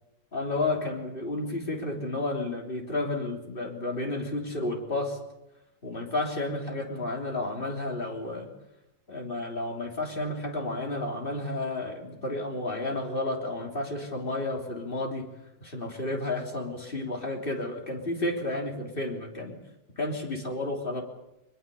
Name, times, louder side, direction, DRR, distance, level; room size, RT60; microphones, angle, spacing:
voice 1, 0.3-5.2 5.8-8.5 9.1-15.3 15.6-19.6 20.0-21.0, left 2 dB, 35° left, 2 dB, 3.5 m, -31 dB
23.0 x 21.0 x 7.0 m, 0.90 s
omnidirectional pair, 1.7 m